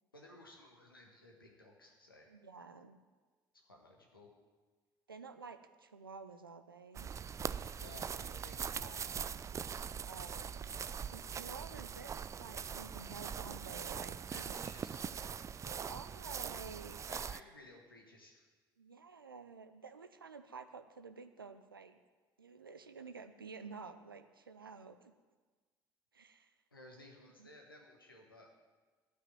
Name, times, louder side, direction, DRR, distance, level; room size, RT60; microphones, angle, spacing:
voice 1, 0.1-2.3 3.6-4.3 7.8-9.0 14.2-15.3 17.1-18.5 26.7-28.5, left 2 dB, 85° left, 0 dB, 1.5 m, -57 dB
voice 2, 2.3-3.0 5.1-7.1 8.8-9.2 10.1-14.6 15.6-17.0 18.8-22.0 22.4-25.1 26.1-26.5 27.2-27.5, right 5 dB, 85° right, 10 dB, 0.6 m, -51 dB
sound 1, 6.9-17.4, right 7 dB, 25° right, 0.4 m, -42 dB
12.5 x 5.9 x 9.0 m, 1.4 s
figure-of-eight pair, 55°, 11 cm